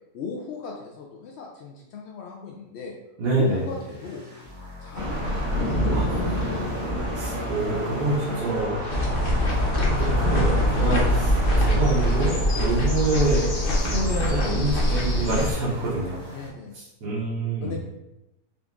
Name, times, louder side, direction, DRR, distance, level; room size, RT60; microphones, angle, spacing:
voice 1, 0.1-2.9 3.3-4.2 4.8-5.3 5.7-6.5 10.7-11.1 16.3-16.8 17.6-17.8, left 5 dB, 85° left, 0 dB, 0.5 m, -37 dB
voice 2, 3.2-3.7 5.9-6.0 7.1-8.8 9.6-11.3 11.6-13.4 13.8-16.2 16.7-17.7, right 2 dB, 80° right, -7 dB, 1.6 m, -26 dB
sound 1, 3.4-9.7 10.0-16.5, equal, 30° right, 1.2 m, -44 dB
Thunder / Rain, 4.9-12.3, equal, 60° right, 1.9 m, -28 dB
sound 2, 8.9-15.5, equal, 45° left, 0.8 m, -23 dB
5.0 x 2.4 x 3.5 m, 0.91 s
omnidirectional pair, 1.7 m